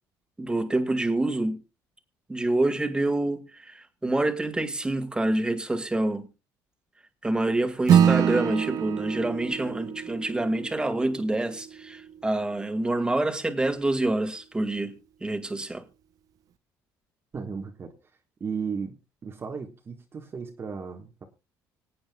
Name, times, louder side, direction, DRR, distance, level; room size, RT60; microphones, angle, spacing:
voice 1, 0.4-1.6 2.3-6.3 7.2-15.8, right 2 dB, 10° right, 1.9 m, -27 dB
Acoustic guitar / Strum, 7.9-12.7, right 9 dB, 60° right, 0.7 m, -25 dB
voice 2, 17.3-17.9 18.4-19.0 19.2-21.2, right 5 dB, 35° right, 1.4 m, -35 dB
25.5 x 8.7 x 2.3 m
cardioid pair, 100°, 7 cm